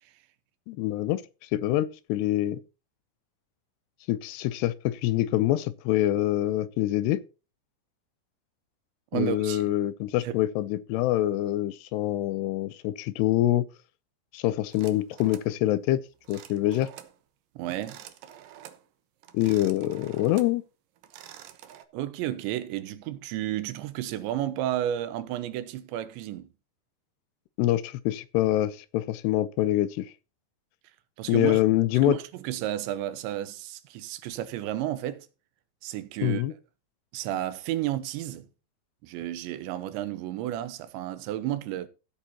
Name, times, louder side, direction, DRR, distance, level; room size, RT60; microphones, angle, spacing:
voice 1, 0.7-2.6 4.1-7.2 9.1-13.7 14.3-16.0 16.3-16.9 19.3-20.6 27.6-30.1 31.3-32.2 36.2-36.5, left 14 dB, 80° left, 2.6 m, -25 dB
voice 2, 9.1-9.7 10.2-10.4 17.6-18.0 21.9-26.5 31.2-31.6 32.0-35.3 35.8-36.4 37.1-38.5 39.0-41.9, right 13 dB, 90° right, 3.3 m, -32 dB
sound 1, 14.7-15.5 16.2-17.2 17.7-18.8 19.2-20.6 21.0-21.8, right 11 dB, 70° right, 2.1 m, -48 dB
15.5 x 8.3 x 2.9 m
omnidirectional pair, 5.1 m